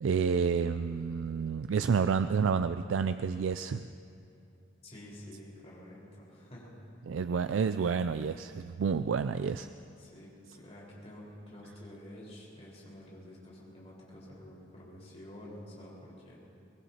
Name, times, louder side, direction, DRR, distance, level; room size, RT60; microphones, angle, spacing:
voice 1, 0.0-3.9 7.1-9.7 10.5-10.6, right 6 dB, 85° right, 10 dB, 0.4 m, -29 dB
voice 2, 4.8-6.7 7.3-7.4 10.0-16.4, left 1 dB, 35° left, -5 dB, 4.7 m, -49 dB
23.5 x 21.0 x 2.9 m, 2.7 s
head